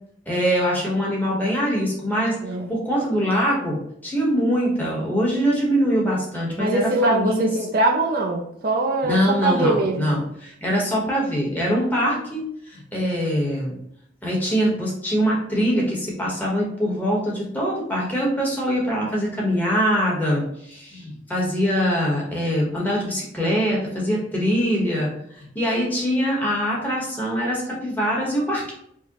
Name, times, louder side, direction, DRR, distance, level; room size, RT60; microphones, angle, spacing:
voice 1, 0.3-2.4 2.7-7.5 9.0-13.7 14.2-25.1 25.4-28.7, equal, 10° left, -4 dB, 1.0 m, -23 dB
voice 2, 6.6-10.1, right 2 dB, 50° right, 1 dB, 0.4 m, -22 dB
4.8 x 2.1 x 2.8 m, 0.72 s
head